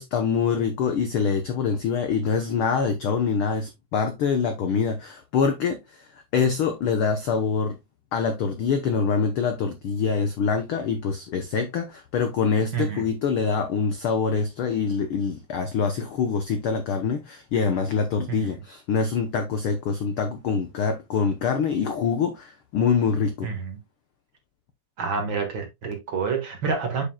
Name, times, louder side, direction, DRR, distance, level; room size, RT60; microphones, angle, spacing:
voice 1, 0.0-7.8 8.1-23.5, left 5 dB, 80° left, 1.2 m, -25 dB
voice 2, 12.7-13.0 18.4-18.5 23.4-23.8 25.0-27.0, right 5 dB, 45° right, 2.0 m, -28 dB
7.5 x 7.1 x 2.2 m
omnidirectional pair, 3.6 m